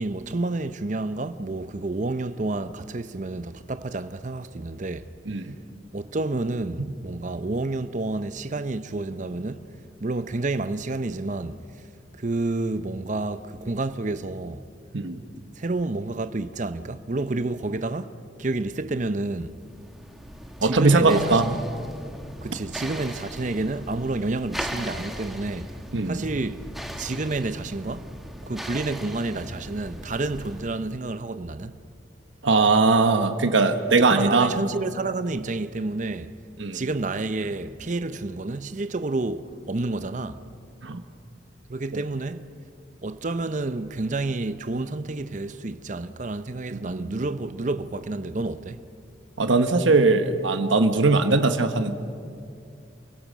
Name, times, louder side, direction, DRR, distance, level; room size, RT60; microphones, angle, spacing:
voice 1, 0.0-5.1 5.9-9.7 10.0-11.6 12.1-14.6 15.6-19.6 20.6-21.6 22.4-25.7 26.1-26.7 27.0-28.1 28.5-31.8 34.0-36.3 36.7-40.4 41.7-42.5 43.0-48.8, right 2 dB, 40° right, 0.7 m, -29 dB
sound 1, 19.4-30.9, equal, ahead, 1.2 m, -38 dB
voice 2, 20.6-21.4 25.9-26.2 32.4-34.5 36.6-36.8 40.8-41.0 41.9-42.0 46.7-47.2 49.4-51.9, right 3 dB, 90° right, 1.1 m, -20 dB
28.5 x 17.0 x 6.2 m
head